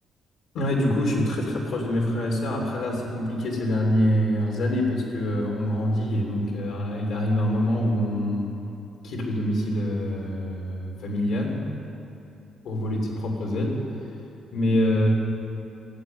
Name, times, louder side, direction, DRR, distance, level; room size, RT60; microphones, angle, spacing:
voice 1, 0.5-8.5 9.0-11.6 12.6-13.8 14.5-15.1, equal, 75° left, -1 dB, 3.1 m, -25 dB
18.5 x 7.6 x 9.5 m, 2.8 s
cardioid pair, 90°, 0 cm